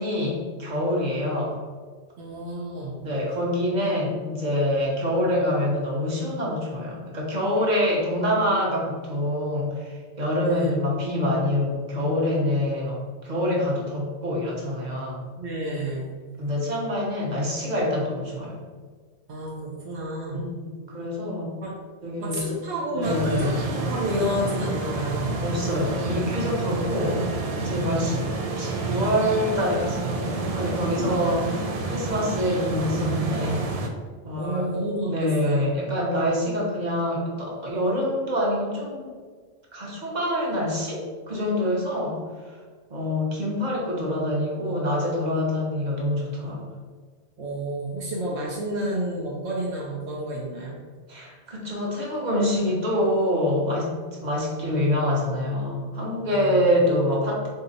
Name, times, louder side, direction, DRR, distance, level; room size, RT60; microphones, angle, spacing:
voice 1, 0.0-1.6 3.0-15.2 16.4-18.6 20.3-21.5 22.0-22.4 22.9-23.6 25.4-27.2 27.6-28.3 28.6-33.6 34.2-34.7 35.1-39.1 39.7-42.6 42.9-46.6 51.1-53.9 54.2-57.5, left 1 dB, 40° right, -3 dB, 1.1 m, -26 dB
voice 2, 2.2-3.1 10.4-10.7 15.4-16.1 19.3-20.4 21.6-21.7 22.2-25.4 27.5-28.2 31.4-31.5 34.3-35.8 47.4-50.8 56.2-56.8, right 1 dB, 80° right, -4 dB, 1.0 m, -30 dB
sound 1, 23.0-33.9, right 3 dB, 60° right, 0.4 m, -29 dB
3.8 x 2.8 x 3.9 m, 1.5 s
omnidirectional pair, 1.1 m